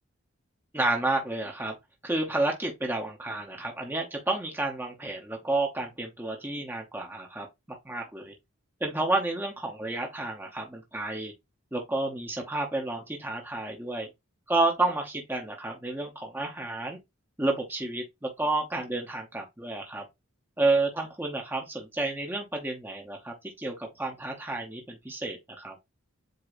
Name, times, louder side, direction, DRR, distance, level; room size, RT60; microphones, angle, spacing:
voice 1, 0.7-1.7 2.0-7.5 7.8-8.3 8.8-11.3 11.7-14.1 14.5-17.0 17.4-20.0 20.6-25.8, right 2 dB, 10° right, 0.8 m, -30 dB
7.7 x 2.7 x 2.5 m
head